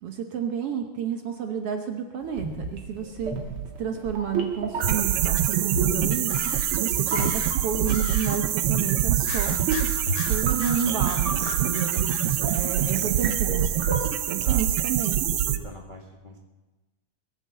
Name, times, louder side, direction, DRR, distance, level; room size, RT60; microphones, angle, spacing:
voice 1, 0.0-2.5 2.7-3.4 3.8-6.5 6.8-9.5 10.3-11.9 12.5-13.9 14.3-15.2, right 7 dB, 60° right, 4 dB, 1.7 m, -30 dB
sound 1, 2.3-14.4, right 3 dB, 45° right, 2.7 m, -33 dB
sound 2, 4.8-15.6, right 11 dB, 80° right, 1.3 m, -25 dB
sound 3, 6.2-8.5 9.2-13.3, left 12 dB, 85° left, 2.2 m, -41 dB
voice 2, 12.2-12.6 14.4-14.6 15.3-16.4, equal, 35° left, 0 dB, 0.8 m, -43 dB
21.5 x 8.0 x 7.5 m, 1.1 s
omnidirectional pair, 3.5 m